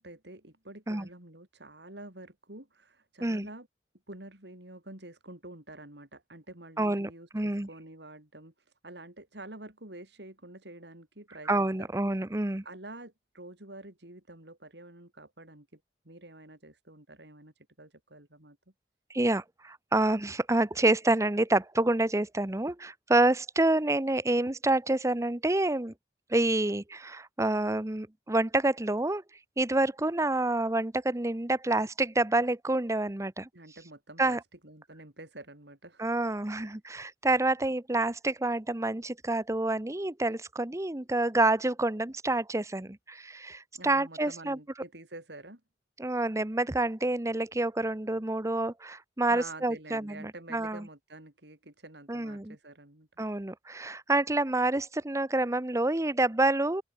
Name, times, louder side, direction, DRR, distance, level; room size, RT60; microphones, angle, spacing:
voice 1, 0.0-3.7 4.1-11.9 12.6-15.8 16.0-18.6 33.5-36.1 43.7-45.6 49.3-53.1, right 2 dB, 70° right, 5.1 m, -48 dB
voice 2, 6.8-7.7 11.5-12.6 19.1-25.9 26.3-29.2 29.6-33.5 34.2-34.4 36.0-44.6 46.0-50.8 52.1-52.6 53.2-56.8, right 2 dB, 15° right, 0.9 m, -28 dB
open air
head